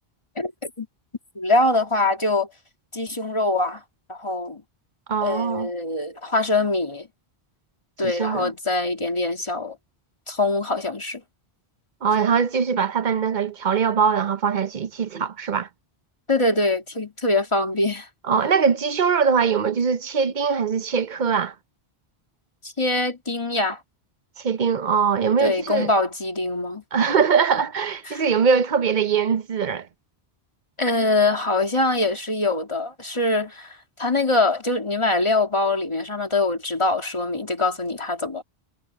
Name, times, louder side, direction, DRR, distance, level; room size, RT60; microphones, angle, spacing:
voice 1, 0.4-0.9 1.4-2.5 2.9-3.8 4.1-4.6 5.2-7.1 8.0-9.8 10.3-11.2 16.3-18.1 22.6-23.8 25.4-26.8 28.1-28.2 30.8-38.4, left 2 dB, 30° left, 2.3 m, -23 dB
voice 2, 5.1-5.7 8.0-8.5 12.0-15.7 18.3-21.5 24.4-25.9 26.9-29.9, right 6 dB, 50° right, 0.8 m, -22 dB
omnidirectional pair, 1.0 m